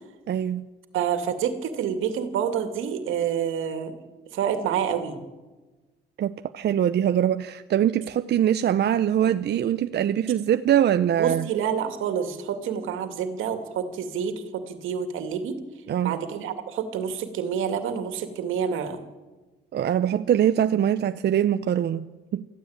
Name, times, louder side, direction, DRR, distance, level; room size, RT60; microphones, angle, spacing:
voice 1, 0.3-0.7 6.2-11.5 15.9-16.2 19.7-22.1 22.3-22.5, right 10 dB, 60° right, 0.7 m, -23 dB
voice 2, 0.9-4.0 4.3-5.2 11.1-15.6 16.0-19.0, right 8 dB, 85° right, 2.4 m, -28 dB
24.0 x 15.0 x 8.8 m
cardioid pair, 90°, 20 cm